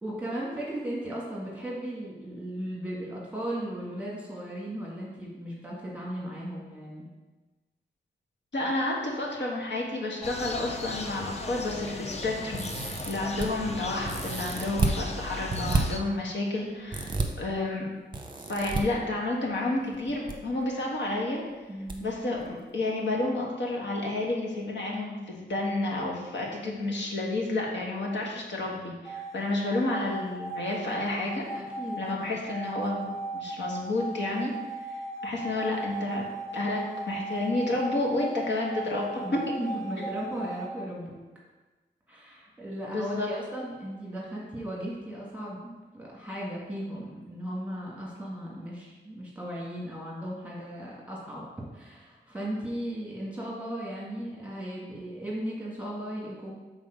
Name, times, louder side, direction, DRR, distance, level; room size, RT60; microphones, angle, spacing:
voice 1, 0.0-7.1 14.6-14.7 21.7-22.1 31.5-32.4 39.2-41.2 42.1-51.5 51.7-56.5, right 1 dB, 5° right, -6 dB, 1.9 m, -36 dB
voice 2, 8.5-17.9 18.5-21.4 22.0-31.4 32.0-34.5 34.9-36.3 36.5-36.8 37.1-39.4 42.9-43.3, left 2 dB, 80° left, -2 dB, 1.6 m, -30 dB
sound 1, 10.2-16.0, left 3 dB, 35° left, 0.6 m, -37 dB
sound 2, 12.5-13.5 14.0-15.0 15.5-15.8 16.9-17.3 18.1-18.8 19.9-20.3 20.6-20.7 21.9-22.0 22.4-22.5, right 3 dB, 25° right, 0.8 m, -30 dB
sound 3, 29.0-40.7, right 2 dB, 15° left, 0.9 m, -37 dB
7.3 x 4.1 x 5.2 m, 1.2 s
wide cardioid pair, 135°, 19 cm